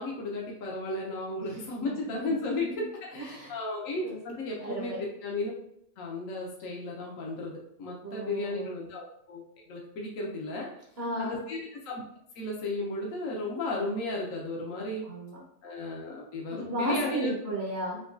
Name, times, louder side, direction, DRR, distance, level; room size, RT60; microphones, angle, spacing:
voice 1, 0.0-5.5 6.0-10.7 11.2-11.6 11.8-12.0 12.3-15.1 15.6-17.3, left 2 dB, 70° left, -2 dB, 1.2 m, -34 dB
voice 2, 2.0-2.8 3.1-3.5 4.0-4.2 4.6-5.0 8.0-8.8 11.0-11.4 15.0-15.4 16.5-18.0, right 1 dB, 50° right, -3 dB, 1.0 m, -34 dB
6.1 x 2.3 x 2.5 m, 0.73 s
omnidirectional pair, 1.4 m